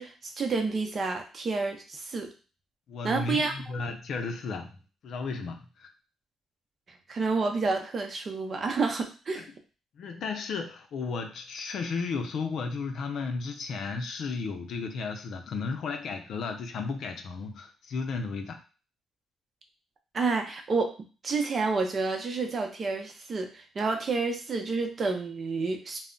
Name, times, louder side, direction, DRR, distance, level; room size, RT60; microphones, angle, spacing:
voice 1, 0.0-2.3 3.0-3.5 7.1-9.4 20.1-21.0 21.2-26.0, right 4 dB, 45° right, 4 dB, 0.6 m, -29 dB
voice 2, 2.9-4.8 5.0-5.9 9.3-9.4 10.0-18.6, left 4 dB, 70° left, 5 dB, 0.5 m, -34 dB
2.1 x 2.0 x 3.7 m, 0.34 s
cardioid pair, 90°, 0 cm